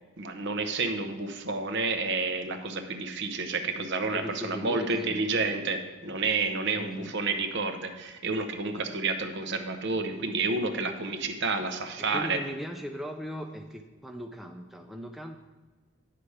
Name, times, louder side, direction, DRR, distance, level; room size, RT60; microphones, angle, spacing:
voice 1, 0.2-12.4, right 3 dB, 55° right, 7 dB, 0.8 m, -30 dB
voice 2, 4.1-5.3 6.7-7.1 12.0-15.4, equal, ahead, 3 dB, 0.3 m, -39 dB
9.8 x 5.8 x 4.9 m, 1.4 s
head